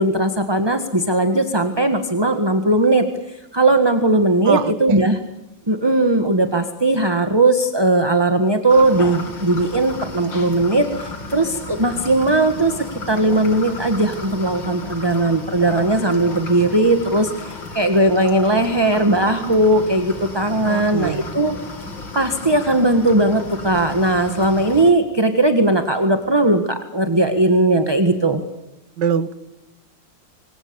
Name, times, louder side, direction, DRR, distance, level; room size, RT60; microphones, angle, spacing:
voice 1, 0.0-5.2 5.7-21.5 22.1-28.4, right 2 dB, 15° right, 7 dB, 1.7 m, -18 dB
voice 2, 4.5-5.1 20.6-21.4 29.0-29.4, right 7 dB, 70° right, 14 dB, 1.8 m, -24 dB
sound 1, 8.7-24.9, left 3 dB, 90° left, 3.8 m, -34 dB
26.5 x 25.5 x 7.1 m, 0.93 s
omnidirectional pair, 2.0 m